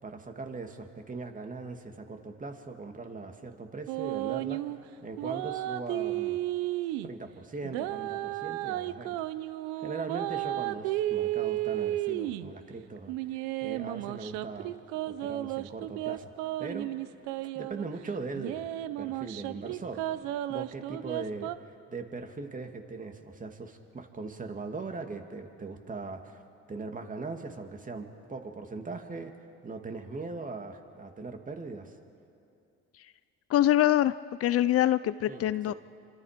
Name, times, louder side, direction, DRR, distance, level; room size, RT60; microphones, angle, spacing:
voice 1, 0.0-6.4 7.0-9.2 9.8-14.8 15.1-16.3 16.6-16.9 17.5-18.7 19.0-20.1 20.5-26.4 26.7-31.9 35.3-35.7, right 3 dB, 25° right, 5 dB, 2.5 m, -40 dB
sound 1, 3.9-4.8 5.2-7.1 7.6-12.5 13.1-17.8 18.4-21.6, right 15 dB, 85° right, 0.8 m, -33 dB
voice 2, 33.5-34.1 34.4-35.7, left 13 dB, 50° left, 15 dB, 0.6 m, -24 dB
28.0 x 25.5 x 5.2 m, 2.6 s
supercardioid pair, 80°, 29 cm